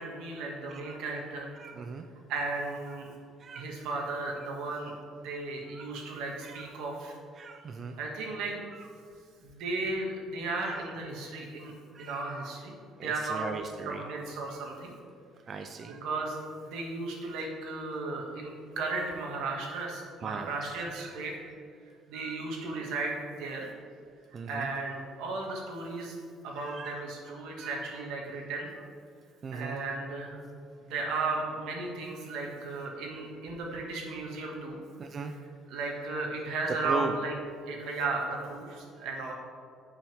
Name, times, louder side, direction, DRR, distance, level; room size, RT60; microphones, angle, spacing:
voice 1, 0.0-1.5 2.3-3.1 3.5-4.9 5.2-7.1 8.0-8.6 9.4-11.7 12.0-12.7 13.0-13.5 13.9-14.9 15.9-16.4 16.6-21.5 22.1-23.1 23.4-23.7 24.5-26.2 26.4-28.7 29.5-30.4 30.8-34.8 35.3-35.4 35.7-37.3 37.6-39.3, right 3 dB, 85° right, 0 dB, 2.1 m, -35 dB
voice 2, 1.6-2.1 3.4-3.6 5.7-5.9 6.4-6.7 7.4-8.0 10.6-10.8 11.9-12.5 13.0-14.0 14.5-14.6 15.5-16.0 20.2-20.7 21.0-21.1 22.1-22.3 24.3-24.7 26.6-27.0 27.6-27.7 29.4-29.8 35.0-35.3 36.8-37.1, right 5 dB, 30° right, 6 dB, 0.5 m, -38 dB
11.5 x 7.2 x 3.6 m, 2.3 s
cardioid pair, 165°, 0 cm